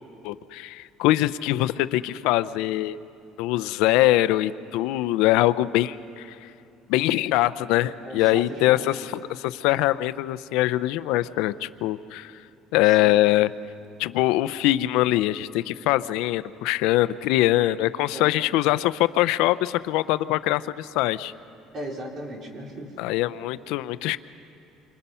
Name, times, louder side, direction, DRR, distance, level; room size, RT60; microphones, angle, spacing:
voice 1, 0.2-3.0 3.4-6.5 6.9-12.3 12.7-13.5 14.0-21.3 23.0-24.2, left 16 dB, 75° left, 15 dB, 0.5 m, -23 dB
voice 2, 8.0-8.8 13.0-13.2 18.1-18.3 21.7-22.9, right 1 dB, 35° right, 0 dB, 3.2 m, -37 dB
28.5 x 25.5 x 5.6 m, 2.7 s
cardioid pair, 160°, 0 cm